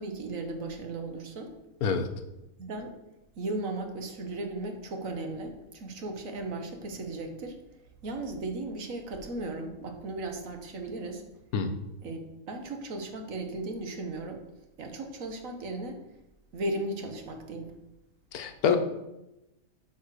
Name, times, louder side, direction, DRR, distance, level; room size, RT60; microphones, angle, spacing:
voice 1, 0.0-1.5 2.6-2.9 3.4-7.6 8.0-11.2 12.0-14.4 14.8-16.0 16.5-17.7, right 2 dB, 65° right, 5 dB, 1.5 m, -36 dB
voice 2, 18.3-18.8, left 6 dB, 85° left, 8 dB, 1.4 m, -26 dB
8.3 x 4.7 x 6.5 m, 0.95 s
omnidirectional pair, 1.5 m